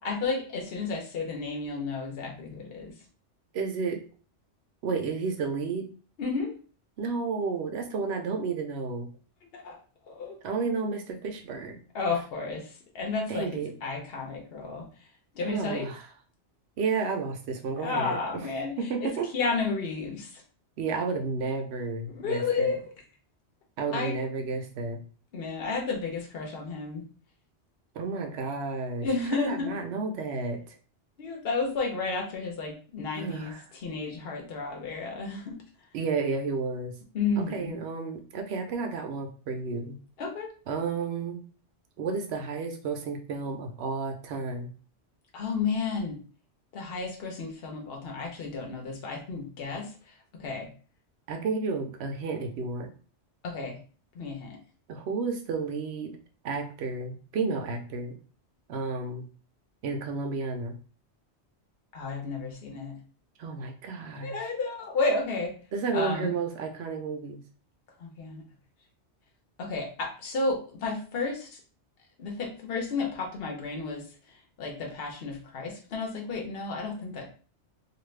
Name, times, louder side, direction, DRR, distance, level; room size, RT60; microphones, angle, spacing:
voice 1, 0.0-2.9 6.2-6.6 9.5-9.8 10.1-10.3 11.9-12.7 12.9-14.9 15.3-15.9 17.7-20.3 22.1-22.9 23.9-24.1 25.3-27.0 29.0-29.7 31.2-33.5 33.8-35.6 37.1-37.8 40.2-40.5 45.3-46.2 46.7-49.9 50.4-50.7 53.4-53.8 54.1-54.6 61.9-63.0 64.2-65.5 65.9-66.3 68.0-68.4 69.6-71.5 72.2-74.0 74.6-77.3, left 4 dB, 60° left, 0 dB, 1.0 m, -32 dB
voice 2, 3.5-4.0 4.8-5.9 7.0-9.1 10.4-11.8 13.3-13.7 15.5-16.0 16.8-18.5 18.8-19.3 20.8-22.8 23.8-25.0 27.9-30.6 33.1-33.6 35.9-36.9 37.4-40.0 40.7-41.4 42.0-44.7 51.3-52.9 54.9-56.1 56.4-58.1 58.7-59.2 59.8-60.7 63.4-64.5 65.7-67.4, right 4 dB, 70° right, 5 dB, 0.8 m, -32 dB
2.6 x 2.4 x 3.2 m, 0.39 s
omnidirectional pair, 1.2 m